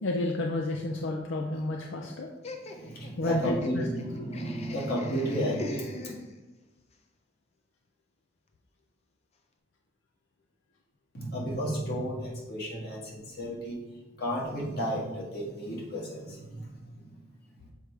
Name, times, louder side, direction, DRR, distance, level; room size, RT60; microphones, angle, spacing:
voice 1, 0.0-2.3 3.2-3.8, left 2 dB, 85° left, 2 dB, 0.5 m, -31 dB
Laughter, 2.4-6.7, left 3 dB, 35° left, 0.5 m, -43 dB
voice 2, 2.6-6.1 11.1-13.8 14.2-17.7, equal, 55° left, -3 dB, 1.7 m, -33 dB
6.5 x 4.8 x 3.3 m, 1.1 s
head